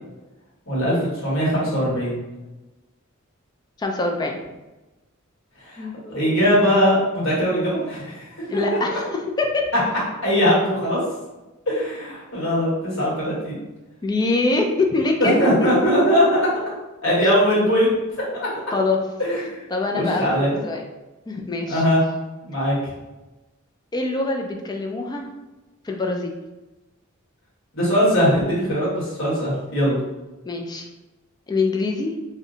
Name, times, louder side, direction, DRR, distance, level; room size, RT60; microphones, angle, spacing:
voice 1, 0.7-1.0 1.2-2.2 5.6-8.2 8.5-8.6 8.9-9.0 10.2-11.0 11.7-13.6 15.2-16.6 17.0-18.0 18.3-18.4 19.2-19.6 19.9-20.6 21.7-22.0 22.4-22.8 27.7-30.0, equal, 70° left, -7 dB, 1.5 m, -20 dB
voice 2, 3.8-4.4 5.8-5.9 8.5-9.1 9.4-9.6 14.0-15.7 18.7-19.0 19.7-20.8 21.3-21.8 23.9-25.3 25.8-26.3 30.5-30.9 31.5-32.2, left 3 dB, 20° left, 2 dB, 0.4 m, -24 dB
2.7 x 2.1 x 3.8 m, 1.1 s
head